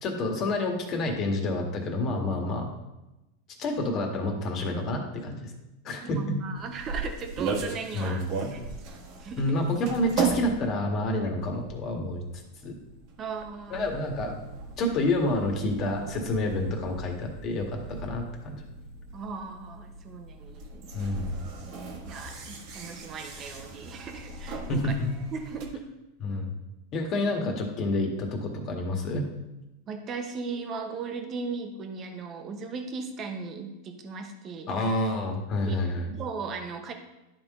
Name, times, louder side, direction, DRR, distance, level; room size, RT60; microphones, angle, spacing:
voice 1, 0.0-2.7 3.6-5.5 5.8-6.4 7.9-8.3 9.4-12.2 12.6-12.7 13.7-14.4 14.8-18.6 20.9-21.3 24.7-25.1 26.2-26.6 26.9-29.3 34.7-36.0, left 2 dB, 40° left, 2 dB, 1.7 m, -28 dB
voice 2, 6.0-8.2 8.5-9.6 13.2-13.9 19.1-20.9 22.0-24.9 25.3-25.8 29.9-34.7 35.7-35.8 36.2-36.9, right 4 dB, 35° right, 5 dB, 1.0 m, -37 dB
sound 1, 6.6-25.7, right 4 dB, 55° right, 1.5 m, -37 dB
11.0 x 3.8 x 3.7 m, 0.97 s
hypercardioid pair, 115°, 0 cm